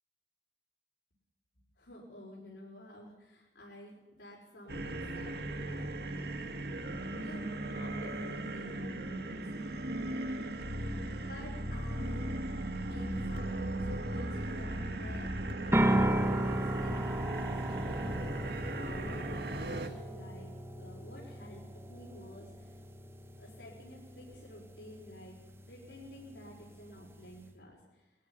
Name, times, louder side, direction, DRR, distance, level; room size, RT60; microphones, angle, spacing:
voice 1, 1.8-9.9 11.1-12.3 12.8-22.8 23.4-25.4 25.7-28.1, left 1 dB, 80° left, -5 dB, 5.6 m, -51 dB
sound 1, 4.7-19.9, right 1 dB, 60° right, 1.8 m, -37 dB
sound 2, 15.7-27.5, right 1 dB, 15° right, 1.3 m, -35 dB
21.5 x 14.0 x 10.0 m, 1.1 s
head